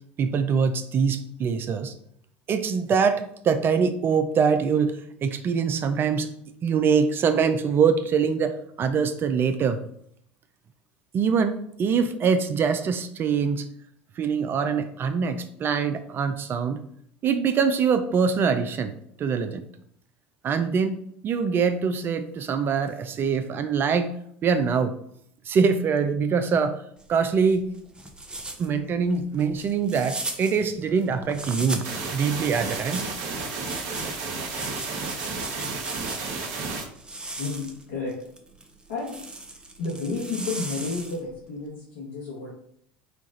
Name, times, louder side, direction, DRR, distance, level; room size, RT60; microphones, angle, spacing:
voice 1, 0.2-1.9 2.5-6.3 6.6-9.8 11.1-13.6 14.2-16.8 17.2-18.9 19.2-19.6 20.4-21.0 21.2-24.1 24.4-25.0 25.5-26.8 27.1-27.7 28.6-33.0, right 6 dB, 35° right, 9 dB, 0.4 m, -24 dB
sound 1, 27.0-32.0 32.6-36.5 36.9-41.3, right 2 dB, 15° right, 0.7 m, -38 dB
sound 2, 31.8-36.8, right 4 dB, 60° right, 0.9 m, -32 dB
voice 2, 37.4-38.2 38.9-39.2 39.8-42.6, left 3 dB, 70° left, -5 dB, 1.3 m, -31 dB
4.4 x 2.4 x 3.9 m, 0.68 s
hypercardioid pair, 75°, 6 cm